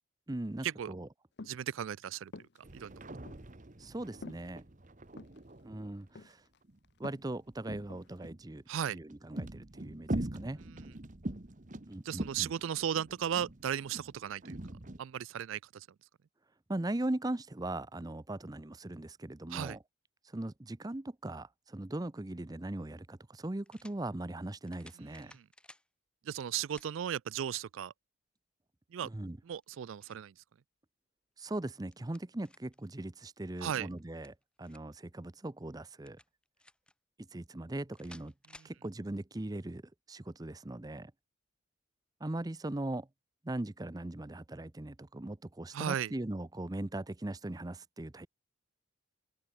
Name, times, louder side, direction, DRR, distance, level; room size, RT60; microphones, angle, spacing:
voice 1, 0.3-1.1 3.8-4.6 5.6-6.4 7.0-8.6 8.9-10.6 11.9-12.5 16.7-19.8 20.2-25.3 29.0-29.4 31.4-36.2 37.2-38.3 38.6-39.8 40.1-41.1 42.2-43.1 43.4-48.3, right 1 dB, 20° right, 0.6 m, -39 dB
sound 1, 1.4-1.7 2.3-2.6 3.3-3.4 4.2-4.4 5.1-5.4 6.2-6.6 6.8-7.4 7.9-8.1, left 3 dB, 50° left, 0.8 m, -47 dB
voice 2, 1.5-2.3 2.7-2.9 8.7-9.0 12.0-14.6 15.0-15.9 19.5-19.8 25.3-25.4 26.3-27.9 28.9-29.1 29.5-30.3 33.6-33.9 38.6-38.7 45.7-46.1, right 9 dB, 70° right, 0.4 m, -36 dB
sound 2, 2.6-6.1 6.6-8.5 9.0-15.0, right 1 dB, 35° right, 1.2 m, -43 dB
sound 3, 22.4-22.5 23.7-24.0 24.7-25.9 26.8-26.9 27.5-27.6 29.5-30.3 31.6-32.8 34.0-35.0 36.1-36.9 37.9-38.8, left 1 dB, 5° left, 3.1 m, -58 dB
open air
head